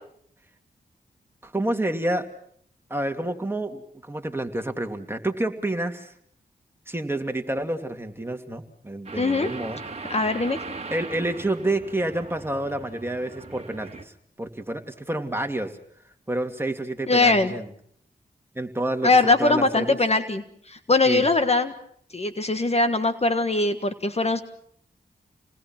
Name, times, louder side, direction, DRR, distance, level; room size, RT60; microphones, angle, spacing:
voice 1, 1.4-2.3 2.9-6.1 6.9-9.8 10.9-14.1 14.4-15.7 16.3-17.7 18.5-20.0 21.1-21.2, right 1 dB, 15° right, 4 dB, 2.8 m, -29 dB
voice 2, 9.1-9.5 10.1-10.6 17.1-17.5 19.0-21.7 22.1-24.4, left 3 dB, 40° left, 9 dB, 1.6 m, -21 dB
sound 1, 9.1-14.0, right 3 dB, 40° right, 2.1 m, -39 dB
28.0 x 20.0 x 6.0 m, 0.65 s
cardioid pair, 50°, 17 cm